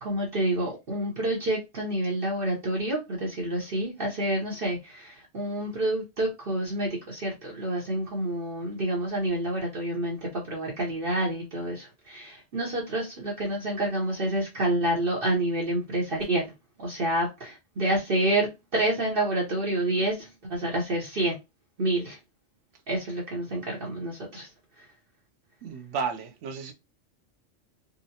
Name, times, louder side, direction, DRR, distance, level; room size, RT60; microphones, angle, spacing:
voice 1, 0.0-16.5 16.8-21.4 21.8-22.2 22.9-24.5 24.8-24.9, right 1 dB, 50° right, 1.0 m, -28 dB
voice 2, 25.6-26.7, right 5 dB, 80° right, 0.9 m, -32 dB
3.8 x 2.1 x 2.7 m
omnidirectional pair, 1.2 m